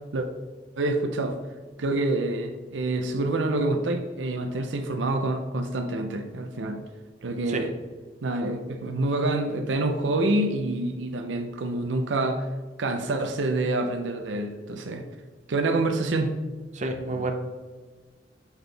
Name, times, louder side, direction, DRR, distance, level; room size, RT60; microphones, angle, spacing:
voice 1, 0.8-1.4 1.8-6.8 7.2-7.7 8.2-12.4 12.8-15.0 15.5-16.3 17.1-17.3, right 2 dB, 75° right, 5 dB, 0.6 m, -27 dB
voice 2, 16.7-17.3, right 2 dB, 40° right, 3 dB, 0.7 m, -29 dB
7.0 x 4.0 x 3.3 m, 1.4 s
head